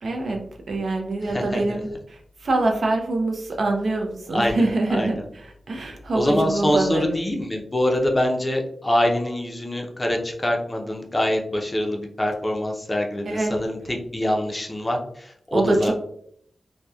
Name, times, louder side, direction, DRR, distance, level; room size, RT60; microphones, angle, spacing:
voice 1, 0.0-5.2 5.7-7.2 13.3-13.5 15.5-15.9, right 2 dB, 70° right, 2 dB, 0.5 m, -24 dB
voice 2, 1.2-1.6 4.3-5.2 6.1-15.9, left 1 dB, 20° left, 1 dB, 0.5 m, -24 dB
2.8 x 2.1 x 2.3 m, 0.68 s
wide cardioid pair, 85°, 0 cm